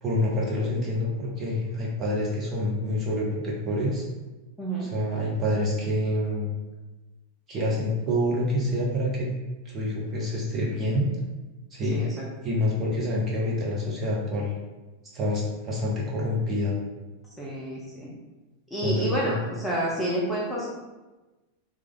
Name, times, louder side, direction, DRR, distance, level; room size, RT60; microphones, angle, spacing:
voice 1, 0.0-4.0 4.8-6.5 7.5-9.3 9.6-11.1 11.7-12.0 12.4-14.5 15.1-16.8 18.8-19.4, left 1 dB, 30° right, -4 dB, 0.9 m, -27 dB
voice 2, 4.6-4.9 11.9-12.3 17.4-18.1 18.7-20.7, right 1 dB, ahead, -7 dB, 0.7 m, -29 dB
3.2 x 2.4 x 3.6 m, 1.1 s
figure-of-eight pair, 90°, 0 cm